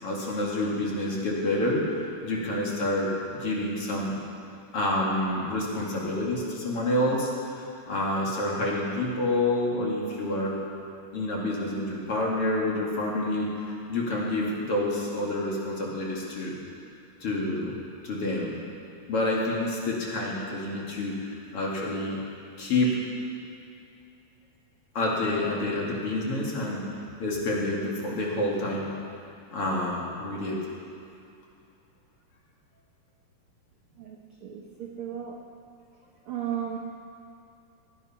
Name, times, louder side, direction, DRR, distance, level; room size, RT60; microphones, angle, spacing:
voice 1, 0.0-1.8 2.2-3.1 3.4-4.2 4.7-10.6 11.1-16.6 17.2-17.7 18.0-18.5 19.1-22.2 22.6-23.0 24.9-26.8 27.2-28.9 29.5-30.6, left 1 dB, 45° left, -4 dB, 2.9 m, -28 dB
voice 2, 34.0-35.4 36.2-36.8, right 9 dB, 75° right, 0 dB, 1.2 m, -35 dB
17.5 x 11.0 x 5.7 m, 2.6 s
omnidirectional pair, 3.9 m